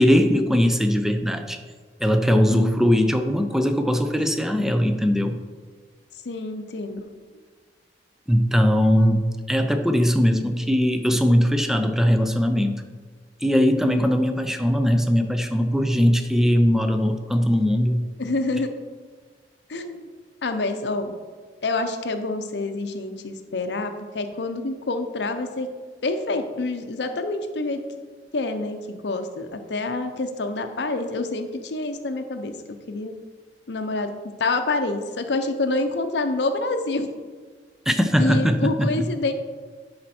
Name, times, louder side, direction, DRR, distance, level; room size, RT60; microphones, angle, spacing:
voice 1, 0.0-1.6 2.0-5.4 8.3-12.8 13.4-18.0 37.9-39.0, equal, 5° right, 7 dB, 0.5 m, -20 dB
voice 2, 6.2-7.1 13.8-14.1 18.2-18.7 19.7-20.0 20.4-21.1 21.6-25.7 26.0-27.8 28.3-32.6 32.9-33.1 33.7-34.1 34.4-37.1 38.2-39.3, left 2 dB, 75° left, 7 dB, 0.7 m, -27 dB
10.5 x 4.3 x 4.3 m, 1.5 s
head